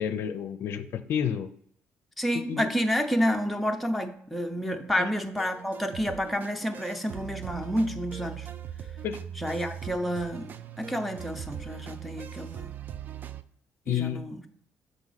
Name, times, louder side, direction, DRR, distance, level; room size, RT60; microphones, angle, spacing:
voice 1, 0.0-1.5 2.3-2.7 9.0-9.2 13.9-14.2, left 9 dB, 60° left, 10 dB, 0.5 m, -30 dB
voice 2, 2.2-8.5 9.4-12.7 13.9-14.4, equal, ahead, 3 dB, 0.6 m, -29 dB
sound 1, 5.4-13.4, right 10 dB, 40° right, 0.4 m, -40 dB
7.2 x 5.1 x 4.0 m, 0.66 s
cardioid pair, 165°, 5 cm